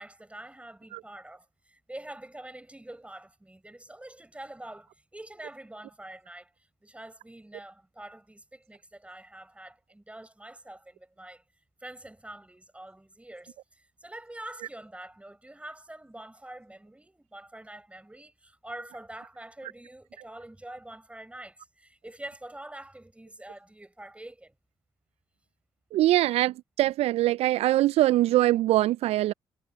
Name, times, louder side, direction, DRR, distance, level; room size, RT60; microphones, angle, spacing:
voice 1, 0.0-6.5 6.8-11.4 11.8-24.5, right 1 dB, 10° right, 7.6 m, -45 dB
voice 2, 25.9-29.3, right 15 dB, 65° right, 0.8 m, -23 dB
figure-of-eight pair, 45°, 11 cm